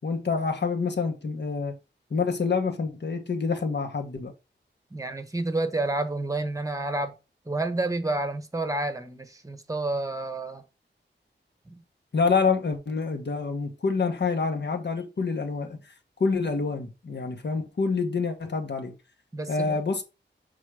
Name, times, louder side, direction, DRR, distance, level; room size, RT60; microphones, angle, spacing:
voice 1, 0.0-1.8 2.1-4.3 12.1-15.8 16.2-18.9 19.5-20.0, left 4 dB, 60° left, 1.4 m, -27 dB
voice 2, 4.9-7.2 7.4-10.6 11.7-11.8 19.3-19.8, right 2 dB, 15° right, 1.1 m, -29 dB
6.2 x 4.1 x 4.9 m
wide cardioid pair, 110°, 20 cm